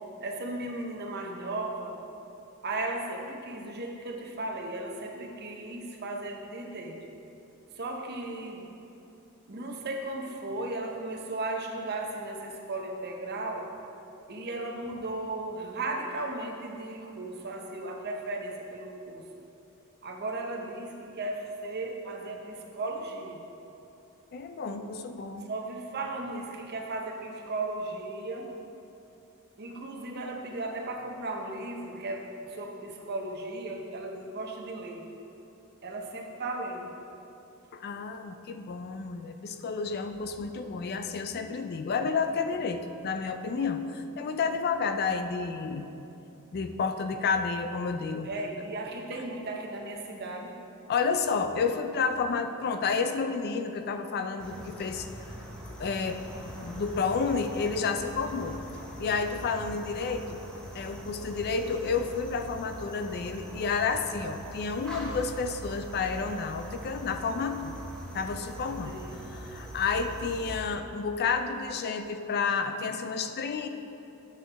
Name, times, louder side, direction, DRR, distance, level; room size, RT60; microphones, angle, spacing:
voice 1, 0.2-2.0 2.6-7.0 7.7-8.6 9.5-13.7 14.3-19.2 20.0-23.4 25.5-28.5 29.6-35.1 35.8-37.0 48.2-50.5 68.9-69.2, right 2 dB, 50° right, 1 dB, 0.8 m, -36 dB
voice 2, 24.3-25.5 37.7-45.9 46.5-48.3 50.9-55.1 55.7-56.2 56.6-58.6 59.0-60.4 60.7-67.8 68.1-69.0 69.4-73.7, left 5 dB, 50° left, 8 dB, 0.4 m, -30 dB
sound 1, 54.4-70.6, right 1 dB, 5° left, 0.8 m, -42 dB
8.4 x 6.3 x 3.4 m, 2.9 s
head